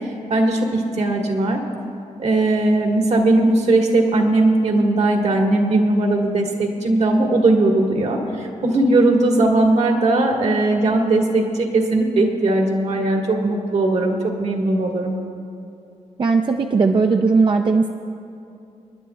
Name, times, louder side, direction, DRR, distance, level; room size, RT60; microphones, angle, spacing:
voice 1, 0.3-1.6 2.2-15.1, right 2 dB, 65° right, 1 dB, 1.6 m, -18 dB
voice 2, 16.2-17.9, right 4 dB, 40° right, 4 dB, 0.5 m, -17 dB
28.5 x 10.5 x 2.3 m, 2.6 s
cardioid pair, 100°, 12 cm